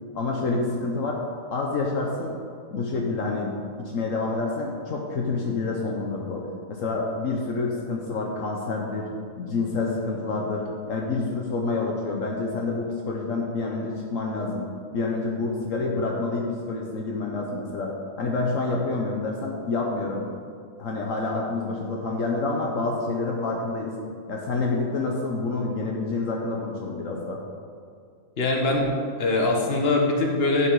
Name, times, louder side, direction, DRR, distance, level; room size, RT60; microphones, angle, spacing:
voice 1, 0.1-1.2 1.5-2.3 2.7-9.1 9.4-14.7 14.9-20.4 20.8-23.9 24.3-27.4, left 3 dB, 70° left, -1 dB, 1.3 m, -28 dB
voice 2, 28.4-28.9 29.2-30.7, left 2 dB, 45° left, 1 dB, 1.5 m, -22 dB
12.0 x 6.0 x 4.7 m, 2.3 s
omnidirectional pair, 1.4 m